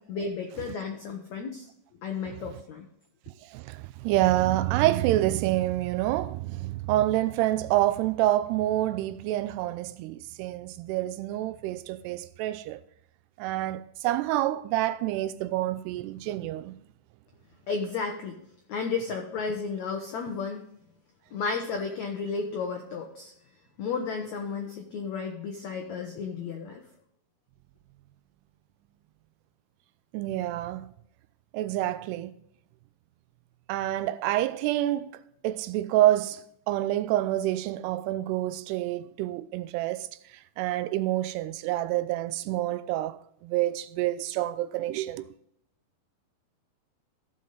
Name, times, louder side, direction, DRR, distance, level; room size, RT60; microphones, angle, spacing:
voice 1, 0.1-1.6 2.0-2.8 17.7-18.4 18.7-20.6 21.3-23.3 23.8-26.8, left 5 dB, 85° left, 1.6 m, -33 dB
voice 2, 3.5-12.8 13.4-16.7 30.1-30.9 31.5-32.3 33.7-35.1 35.4-36.4 36.7-40.1 40.6-43.2 43.4-45.3, right 15 dB, 85° right, 2.5 m, -27 dB
15.5 x 5.6 x 3.9 m
omnidirectional pair, 4.9 m